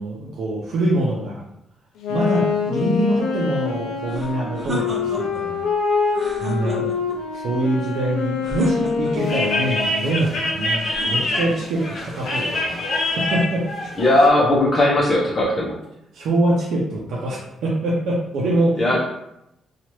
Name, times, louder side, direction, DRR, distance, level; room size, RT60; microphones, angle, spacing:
voice 1, 0.0-1.4 2.1-5.7 6.4-6.9 7.3-13.6 16.1-19.0, right 1 dB, 75° right, -4 dB, 0.6 m, -24 dB
Wind instrument woodwind instrument, 2.0-10.3, left 5 dB, 90° left, 0.4 m, -25 dB
sound 1, 4.1-5.5 6.1-7.2 8.4-9.4 10.8-11.7, equal, 30° right, 0.9 m, -32 dB
sound 2, 9.2-14.3, left 1 dB, 70° left, 0.8 m, -25 dB
voice 2, 14.0-15.7 18.8-19.0, left 1 dB, 30° left, -5 dB, 0.7 m, -17 dB
2.8 x 2.4 x 3.0 m, 0.84 s
cardioid pair, 90°, 0 cm